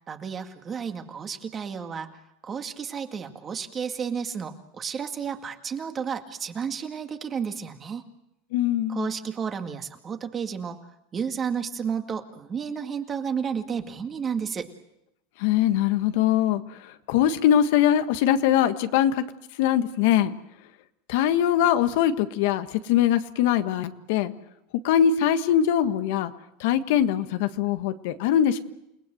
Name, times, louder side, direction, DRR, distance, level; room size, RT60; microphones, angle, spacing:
voice 1, 0.1-2.2 2.4-8.0 8.9-10.8 11.1-14.7, right 7 dB, 25° right, 6 dB, 2.1 m, -32 dB
voice 2, 8.5-9.1 15.4-16.6 17.1-19.2 19.6-20.3 21.1-24.3 24.8-26.3 26.6-28.6, left 10 dB, 70° left, 9 dB, 1.5 m, -22 dB
29.0 x 19.0 x 7.9 m, 0.84 s
supercardioid pair, 125°, 0 cm